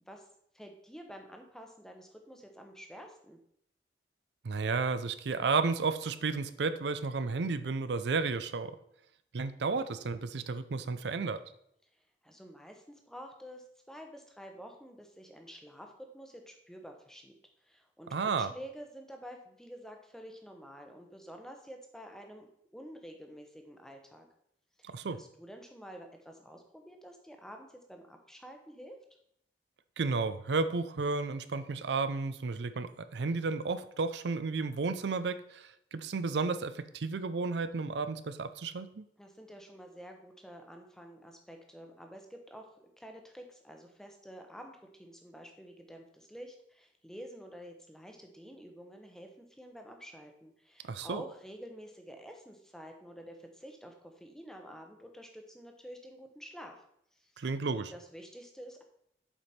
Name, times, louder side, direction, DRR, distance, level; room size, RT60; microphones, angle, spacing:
voice 1, 0.5-3.4 11.9-17.3 17.6-22.5 22.7-24.3 24.8-29.0 39.2-56.8 57.1-57.4 57.9-58.8, equal, 5° left, 3 dB, 0.8 m, -49 dB
voice 2, 4.4-8.8 9.3-11.4 18.1-18.5 24.8-25.2 30.0-39.0 50.8-51.2 57.4-57.9, right 4 dB, 75° right, 12 dB, 0.5 m, -32 dB
7.3 x 5.1 x 4.2 m, 0.72 s
head